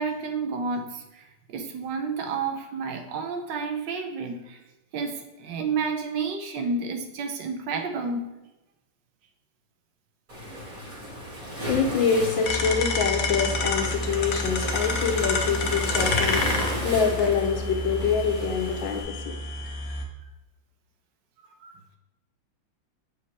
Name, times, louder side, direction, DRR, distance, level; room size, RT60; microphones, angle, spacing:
voice 1, 0.0-4.6 4.9-8.2 19.6-20.0 21.5-21.8, right 4 dB, 75° right, 5 dB, 1.4 m, -31 dB
Waves surf, 10.3-19.0, equal, 45° right, 2.4 m, -34 dB
voice 2, 11.7-19.3, left 6 dB, 80° left, 4 dB, 1.7 m, -25 dB
sound 1, 12.4-20.0, left 2 dB, 55° left, 1.2 m, -29 dB
7.9 x 5.0 x 4.7 m, 0.99 s
omnidirectional pair, 2.1 m